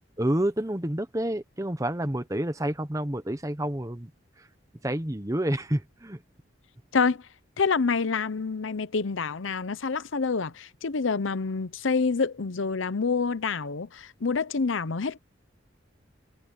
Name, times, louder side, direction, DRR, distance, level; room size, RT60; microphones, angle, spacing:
voice 1, 0.2-4.1 4.8-6.2, right 1 dB, 15° right, 1.1 m, -29 dB
voice 2, 7.6-15.2, left 4 dB, 85° left, 0.7 m, -27 dB
head